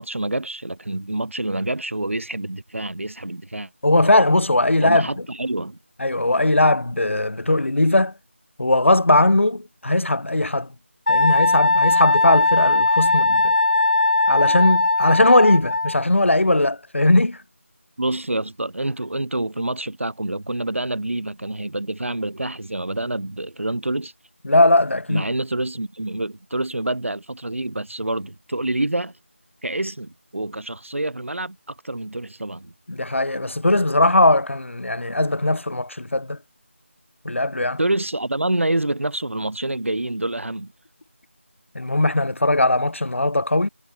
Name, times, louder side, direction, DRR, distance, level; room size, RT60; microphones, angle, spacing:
voice 1, 0.0-3.7 4.8-5.8 18.0-24.1 25.1-29.1 29.6-32.7 37.8-40.7, right 1 dB, 70° right, 6.4 m, -27 dB
voice 2, 3.8-5.1 6.0-8.1 8.6-10.7 11.1-13.5 14.3-17.4 24.4-25.2 32.9-36.4 37.2-37.8 41.7-43.7, left 2 dB, 65° left, 4.1 m, -19 dB
Wind instrument woodwind instrument, 11.1-16.0, left 2 dB, 45° left, 2.1 m, -19 dB
figure-of-eight pair, 175°, 7 cm